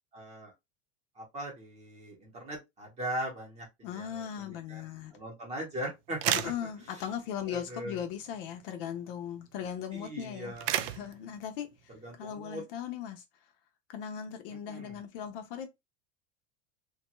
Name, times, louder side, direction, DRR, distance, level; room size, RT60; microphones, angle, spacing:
voice 1, 0.1-0.5 1.2-4.8 5.1-6.3 7.5-8.0 9.9-10.9 12.0-12.6 14.7-15.0, right 1 dB, 20° right, 0.8 m, -40 dB
voice 2, 3.8-5.2 6.3-13.4 13.9-15.7, left 9 dB, 50° left, 0.4 m, -38 dB
sound 1, 6.1-7.2 7.6-7.8 8.1-9.1 9.5-9.7 10.3-11.5 12.3-12.4, right 11 dB, 80° right, 0.5 m, -33 dB
3.0 x 2.2 x 2.9 m
supercardioid pair, 180°, 37 cm